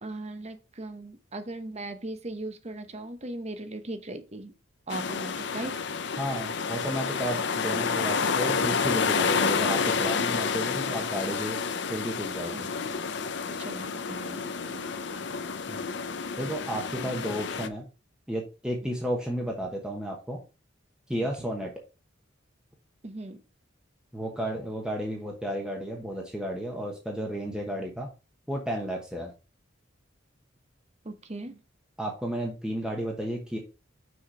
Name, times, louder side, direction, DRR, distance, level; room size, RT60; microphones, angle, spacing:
voice 1, 0.0-4.5 4.9-5.7 12.5-12.8 13.5-14.8 21.4-21.5 23.0-23.4 31.0-31.6, right 2 dB, 35° right, 9 dB, 1.0 m, -38 dB
sound 1, 4.9-17.7, left 5 dB, 60° left, 0.7 m, -29 dB
voice 2, 6.2-11.6 11.9-12.7 15.7-15.8 16.4-17.8 18.3-20.4 21.1-21.7 24.1-28.1 28.5-29.3 32.0-33.6, equal, 5° right, 0 dB, 1.1 m, -32 dB
6.4 x 4.9 x 4.8 m, 0.31 s
head